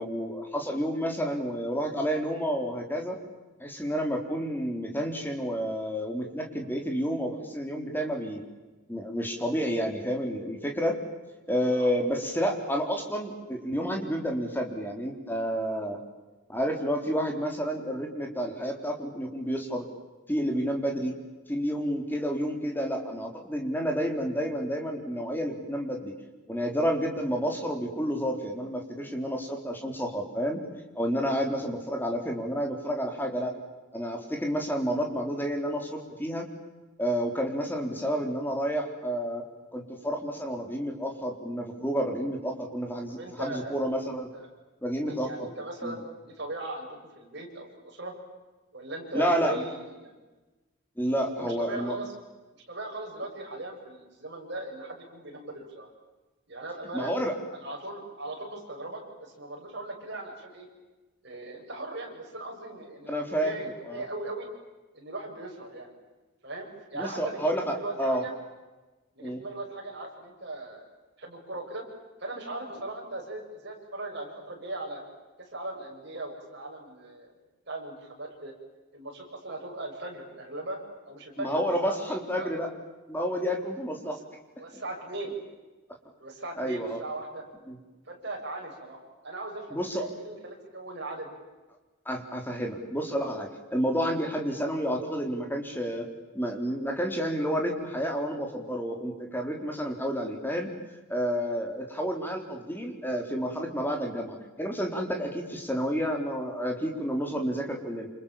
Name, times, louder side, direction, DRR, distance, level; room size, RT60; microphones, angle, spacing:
voice 1, 0.0-3.2 3.6-8.4 8.9-11.0 11.5-16.0 16.5-19.9 20.3-21.1 21.5-26.1 26.5-30.6 31.0-33.6 33.9-36.5 37.0-39.4 39.7-44.3 44.8-45.5 45.8-46.0 49.1-49.6 51.0-51.9 56.9-57.3 63.1-63.5 63.8-64.0 66.9-68.2 69.2-69.4 81.4-82.7 83.1-84.2 86.6-87.0 87.7-87.8 89.7-90.1 92.1-96.1 96.3-100.7 101.1-108.1, equal, 10° left, 2 dB, 4.0 m, -30 dB
voice 2, 43.1-43.7 44.3-44.4 45.0-48.1 48.7-50.2 51.4-52.1 52.7-55.9 56.5-57.1 57.5-60.7 61.2-64.5 64.9-65.9 66.4-68.3 69.2-70.9 71.2-71.8 72.2-75.0 75.4-77.3 77.7-78.5 78.9-82.5 84.0-84.1 84.6-85.4 86.2-87.4 88.1-91.4, right 2 dB, 50° right, 1 dB, 7.4 m, -39 dB
28.5 x 28.0 x 7.4 m, 1.2 s
head